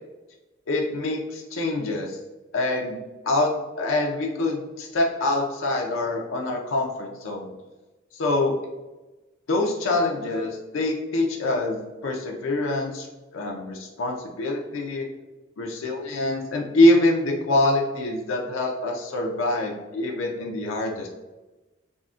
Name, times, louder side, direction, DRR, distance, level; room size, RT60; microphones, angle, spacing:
voice 1, 0.7-2.2 2.5-3.0 3.2-3.5 3.8-7.5 8.1-8.5 9.5-13.1 13.3-15.1 15.6-21.1, left 2 dB, 85° left, 0 dB, 0.4 m, -25 dB
3.6 x 2.1 x 2.4 m, 1.1 s
head